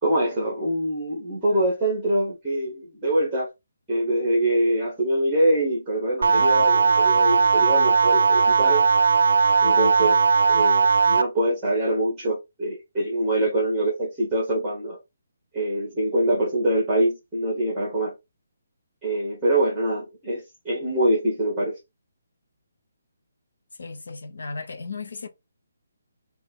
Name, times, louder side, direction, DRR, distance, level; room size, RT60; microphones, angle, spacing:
voice 1, 0.0-3.5 3.9-8.8 9.6-10.2 10.5-15.0 15.5-18.1 19.0-21.8, right 1 dB, 5° right, 1.3 m, -24 dB
sound 1, 6.2-11.2, right 5 dB, 55° right, 0.5 m, -18 dB
voice 2, 23.8-25.3, left 4 dB, 60° left, 0.9 m, -35 dB
4.4 x 2.9 x 3.8 m
hypercardioid pair, 180°, 0 cm